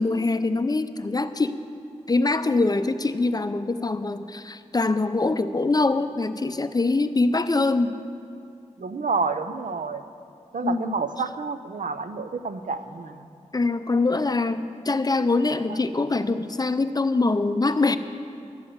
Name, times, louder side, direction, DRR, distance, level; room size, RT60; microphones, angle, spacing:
voice 1, 0.0-1.5 2.1-8.0 10.6-11.0 13.5-18.0, left 3 dB, 30° left, 11 dB, 0.5 m, -23 dB
voice 2, 8.8-10.0 10.5-13.3, right 4 dB, 80° right, 10 dB, 0.6 m, -29 dB
12.5 x 7.7 x 7.9 m, 2.5 s
wide cardioid pair, 95°, 13 cm